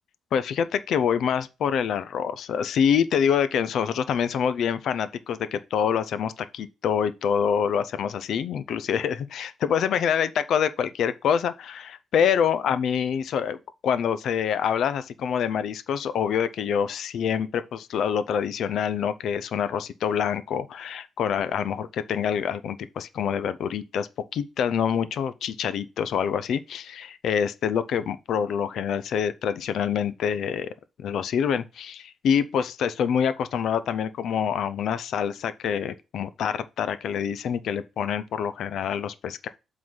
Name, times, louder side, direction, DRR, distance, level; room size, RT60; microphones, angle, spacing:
voice 1, 0.3-13.6 13.8-30.7 31.0-39.5, left 8 dB, 60° left, 0.5 m, -26 dB
7.7 x 3.9 x 5.6 m
cardioid pair, 175°, 0 cm